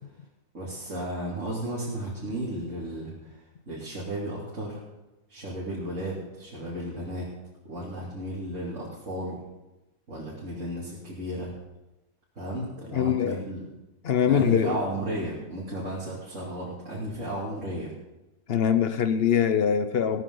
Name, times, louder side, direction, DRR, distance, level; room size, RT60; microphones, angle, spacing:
voice 1, 0.5-4.8 5.3-7.3 7.6-9.4 10.1-11.5 12.3-13.7 14.2-17.9, right 1 dB, 60° right, -8 dB, 3.2 m, -34 dB
voice 2, 12.9-13.4 14.0-14.8 18.5-20.2, left 8 dB, 55° left, 11 dB, 0.7 m, -23 dB
17.0 x 13.0 x 3.9 m, 1.0 s
omnidirectional pair, 1.5 m